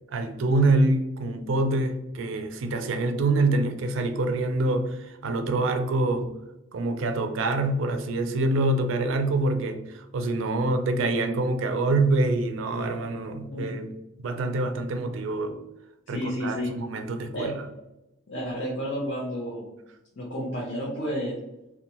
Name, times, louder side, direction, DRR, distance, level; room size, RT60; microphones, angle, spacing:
voice 1, 0.1-6.3 6.7-13.9 14.2-15.6 16.1-17.5, right 2 dB, 75° right, 0.4 m, -25 dB
voice 2, 16.1-16.7 17.3-17.5 18.3-19.7 20.2-21.4, equal, 60° left, 0.6 m, -31 dB
2.6 x 2.2 x 2.8 m
head